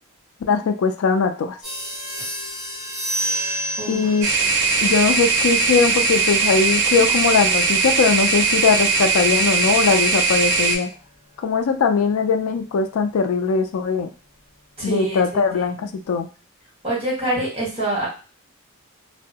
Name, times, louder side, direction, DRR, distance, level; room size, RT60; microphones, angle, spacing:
voice 1, 0.5-1.6 3.9-4.3 4.8-10.9 11.4-14.1 14.8-16.3, left 5 dB, 75° left, 6 dB, 0.3 m, -20 dB
sound 1, 1.6-11.8, right 1 dB, ahead, 1.2 m, -33 dB
voice 2, 3.8-4.1 14.8-15.9 16.8-18.1, right 1 dB, 25° right, -6 dB, 1.5 m, -26 dB
sound 2, 4.2-10.8, right 4 dB, 55° right, 0.5 m, -19 dB
2.6 x 2.1 x 2.7 m, 0.35 s
head